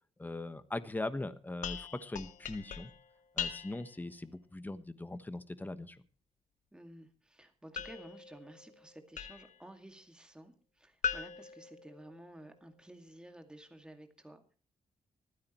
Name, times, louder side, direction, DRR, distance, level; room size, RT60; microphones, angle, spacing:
voice 1, 0.2-2.9 3.4-6.0, left 2 dB, 15° left, 12 dB, 1.2 m, -40 dB
sound 1, 1.6-4.0 7.8-9.6 11.0-12.5, left 7 dB, 70° left, 1.3 m, -41 dB
voice 2, 6.7-14.4, right 1 dB, 5° right, 5 dB, 2.1 m, -53 dB
26.0 x 9.7 x 3.1 m, 0.40 s
cardioid pair, 100°, 13 cm